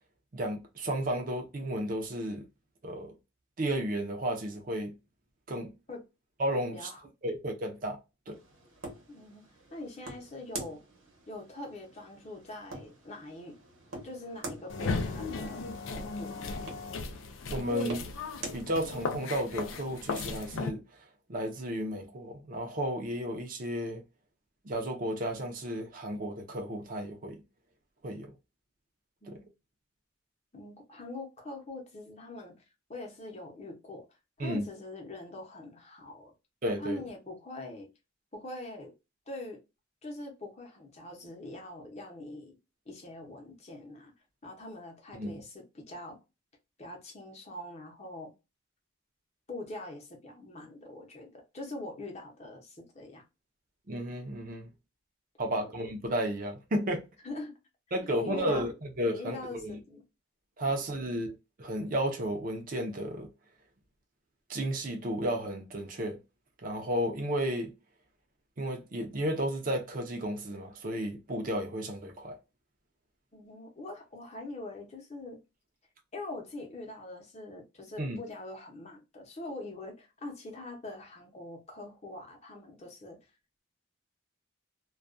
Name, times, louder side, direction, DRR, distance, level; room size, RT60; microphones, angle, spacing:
voice 1, 0.3-2.4 2.8-3.1 3.6-4.9 5.5-5.7 6.4-6.9 7.2-8.0 8.3-8.4 17.5-18.0 18.5-21.0 21.3-24.0 24.6-27.4 28.0-28.3 29.3-29.4 34.4-34.7 36.6-37.0 45.1-45.3 53.9-54.7 55.4-57.0 57.9-58.7 59.0-59.8 60.6-61.3 61.6-63.3 64.5-66.2 66.6-67.7 68.6-72.4 78.0-78.2, right 1 dB, 45° right, 0.5 m, -33 dB
voice 2, 6.7-7.0 9.1-9.4 9.7-10.8 11.3-13.6 14.0-16.6 29.2-29.4 30.5-32.6 32.9-34.0 34.4-36.3 36.8-37.9 38.3-38.9 39.3-39.6 40.0-42.6 42.9-44.1 44.4-46.2 46.8-48.3 49.5-53.2 57.2-57.6 58.1-58.6 59.0-60.0 60.6-60.8 73.3-75.4 76.1-83.2, left 2 dB, 35° left, 0.7 m, -43 dB
sound 1, 8.3-18.6, right 2 dB, 85° right, 0.9 m, -46 dB
sound 2, 14.7-20.7, left 4 dB, 80° left, 0.4 m, -36 dB
2.3 x 2.2 x 2.5 m
head